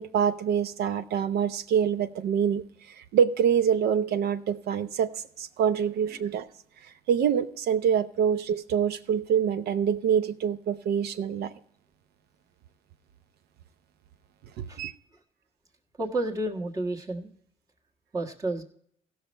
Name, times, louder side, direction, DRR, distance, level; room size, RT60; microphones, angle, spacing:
voice 1, 0.0-6.5 7.1-11.5 14.6-14.9, right 8 dB, 70° right, 0.8 m, -26 dB
voice 2, 6.0-6.3 14.7-14.8 16.0-17.3 18.1-18.6, right 2 dB, 20° right, 1.6 m, -31 dB
16.0 x 6.5 x 4.4 m
cardioid pair, 110°, 17 cm